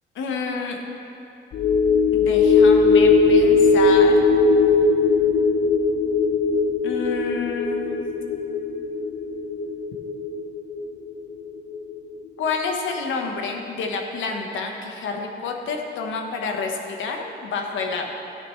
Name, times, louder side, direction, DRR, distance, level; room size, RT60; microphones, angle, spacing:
voice 1, 0.1-0.8 2.1-4.3 6.8-8.0 12.4-18.1, left 4 dB, 75° left, 2 dB, 1.2 m, -29 dB
sound 1, 1.5-12.1 12.5-12.6, left 4 dB, 60° left, 0.8 m, -19 dB
13.0 x 9.5 x 3.2 m, 2.9 s
cardioid pair, 90°, 20 cm